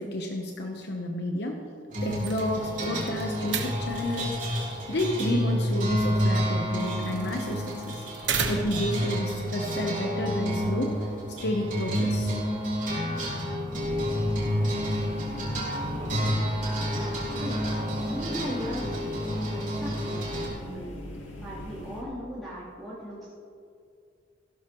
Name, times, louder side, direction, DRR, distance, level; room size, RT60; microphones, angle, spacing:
voice 1, 0.0-1.6 2.0-4.6 4.9-8.0 8.5-11.0 11.4-12.3, left 1 dB, 60° left, 2 dB, 0.9 m, -31 dB
sound 1, 1.9-20.5, equal, 40° right, 3.4 m, -29 dB
sound 2, 2.0-9.0, right 6 dB, 70° right, 1.1 m, -37 dB
sound 3, 13.7-22.0, left 1 dB, 80° left, 2.2 m, -40 dB
voice 2, 15.9-16.3 16.9-17.6 18.1-20.9 21.4-23.3, equal, ahead, -14 dB, 3.2 m, -38 dB
15.5 x 12.0 x 3.1 m, 2.4 s
head